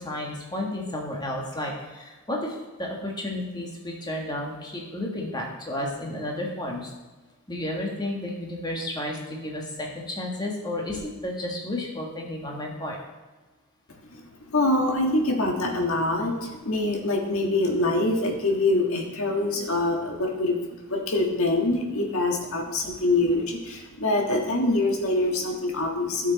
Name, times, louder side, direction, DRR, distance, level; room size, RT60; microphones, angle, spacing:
voice 1, 0.0-6.9 7.5-13.0 16.4-16.5, left 1 dB, 20° left, -1 dB, 1.7 m, -32 dB
voice 2, 14.5-20.6 20.9-26.3, left 2 dB, 75° left, 2 dB, 1.6 m, -24 dB
12.0 x 6.6 x 4.1 m, 1.2 s
head